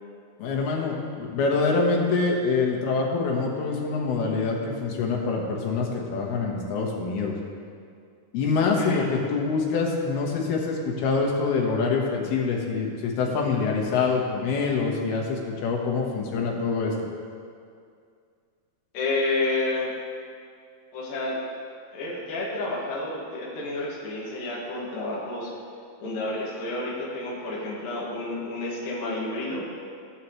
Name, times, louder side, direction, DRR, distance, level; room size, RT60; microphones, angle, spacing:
voice 1, 0.4-7.3 8.3-16.9, left 4 dB, 90° left, -1 dB, 3.4 m, -25 dB
voice 2, 8.7-9.1 18.9-19.9 20.9-21.4 21.9-25.5 26.0-29.7, left 2 dB, 70° left, -6 dB, 3.7 m, -30 dB
18.0 x 8.6 x 3.2 m, 2.3 s
omnidirectional pair, 4.3 m